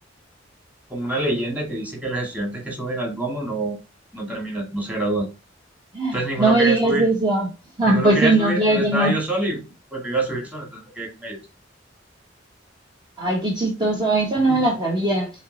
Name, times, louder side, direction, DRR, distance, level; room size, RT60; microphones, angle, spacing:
voice 1, 0.9-3.8 4.1-5.3 6.1-7.1 7.8-9.6 9.9-11.4 14.5-14.6, right 2 dB, 10° right, -1 dB, 2.3 m, -26 dB
voice 2, 5.9-7.5 7.8-9.1 13.2-15.3, right 2 dB, 25° right, -3 dB, 1.6 m, -20 dB
7.2 x 3.3 x 4.2 m, 0.29 s
head